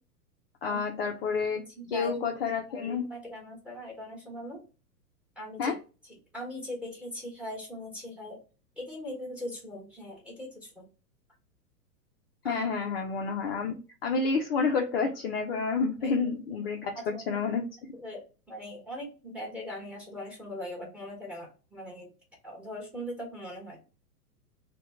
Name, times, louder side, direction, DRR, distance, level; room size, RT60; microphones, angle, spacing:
voice 1, 0.6-1.6 1.9-3.0 5.6-5.8 12.4-13.8 14.0-17.6, left 5 dB, 40° left, 3 dB, 0.4 m, -29 dB
voice 2, 1.3-2.1 2.7-4.6 5.4-5.7 6.3-8.4 8.8-10.8 12.4-12.9 13.5-13.6 16.0-16.2 16.9-17.4 17.9-22.1 22.4-23.8, left 1 dB, ahead, -1 dB, 1.1 m, -40 dB
2.8 x 2.2 x 3.5 m, 0.33 s
hypercardioid pair, 110°, 49 cm